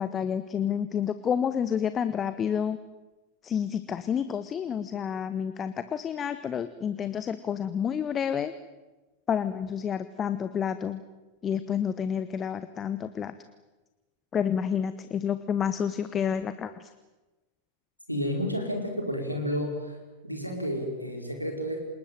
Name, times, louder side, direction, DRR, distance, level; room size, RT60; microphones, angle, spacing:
voice 1, 0.0-2.8 3.4-8.5 9.3-11.0 11.4-13.3 14.3-16.7, left 8 dB, 25° left, 12 dB, 1.1 m, -29 dB
voice 2, 18.1-20.0 20.2-21.8, equal, 90° right, 3 dB, 4.9 m, -31 dB
27.0 x 20.0 x 9.2 m, 1.2 s
figure-of-eight pair, 90°, 0 cm